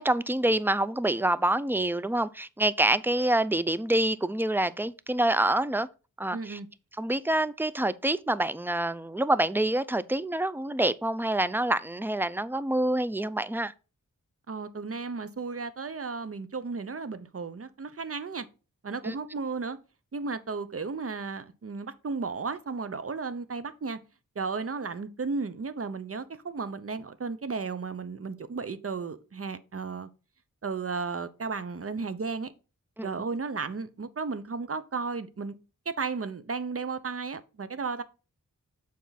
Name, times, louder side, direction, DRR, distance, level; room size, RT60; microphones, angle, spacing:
voice 1, 0.0-5.9 6.2-6.6 7.0-13.7 19.0-19.2 33.0-33.1, right 1 dB, 5° right, 0.5 m, -26 dB
voice 2, 6.3-6.7 14.5-18.5 18.8-19.8 20.1-24.0 24.4-30.1 30.6-32.5 33.0-35.5 35.9-38.0, right 4 dB, 45° right, 0.8 m, -34 dB
7.2 x 4.6 x 4.1 m
cardioid pair, 50°, 33 cm